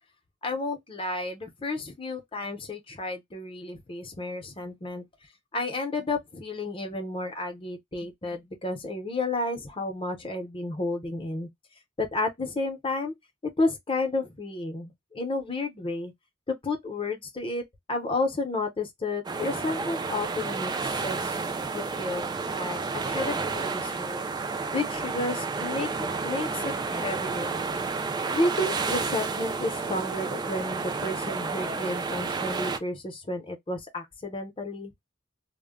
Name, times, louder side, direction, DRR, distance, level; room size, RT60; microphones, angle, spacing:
voice 1, 0.4-5.0 5.5-11.5 12.0-13.1 13.6-16.1 16.5-17.6 17.9-21.4 21.7-22.3 22.5-24.2 24.7-27.6 28.3-34.9, left 2 dB, 25° left, 0.7 m, -31 dB
sound 1, 19.2-32.8, right 4 dB, 20° right, 0.3 m, -31 dB
2.1 x 2.1 x 3.5 m
head